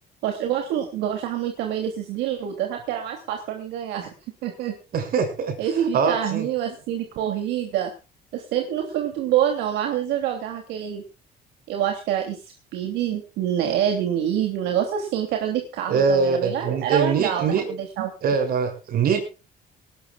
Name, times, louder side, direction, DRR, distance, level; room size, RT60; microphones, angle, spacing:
voice 1, 0.2-4.1 4.4-4.7 5.6-7.9 8.3-11.0 11.7-12.4 12.7-18.1, right 10 dB, 85° right, 4 dB, 3.1 m, -26 dB
voice 2, 4.9-5.6 5.9-6.5 15.9-17.7 18.2-19.2, right 5 dB, 60° right, 8 dB, 6.7 m, -22 dB
19.0 x 19.0 x 2.4 m, 0.33 s
cardioid pair, 110°, 17 cm